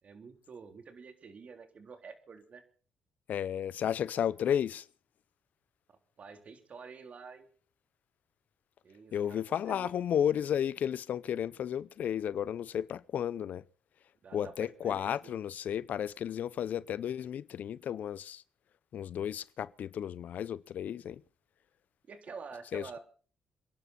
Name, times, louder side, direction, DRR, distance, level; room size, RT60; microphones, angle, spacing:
voice 1, 0.0-2.6 5.9-7.5 8.8-9.9 14.2-15.4 22.1-23.0, right 5 dB, 50° right, 3.5 m, -48 dB
voice 2, 3.3-4.8 9.1-13.6 14.3-18.4 18.9-21.2 22.7-22.9, left 9 dB, 65° left, 0.6 m, -33 dB
28.0 x 11.0 x 4.3 m
supercardioid pair, 70°, 3 cm